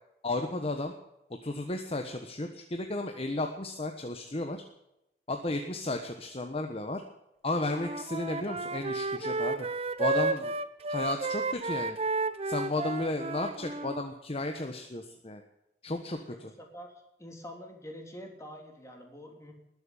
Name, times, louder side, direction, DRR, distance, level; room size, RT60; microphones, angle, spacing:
voice 1, 0.2-0.9 1.4-4.6 5.3-7.0 7.4-9.7 10.0-10.5 10.9-12.0 12.5-15.4 15.8-16.5, left 2 dB, 35° left, 5 dB, 1.2 m, -33 dB
Wind instrument woodwind instrument, 7.7-14.0, right 3 dB, 35° right, 0.8 m, -32 dB
voice 2, 16.3-19.5, equal, 15° left, 2 dB, 3.4 m, -46 dB
20.0 x 7.7 x 9.0 m, 0.87 s
head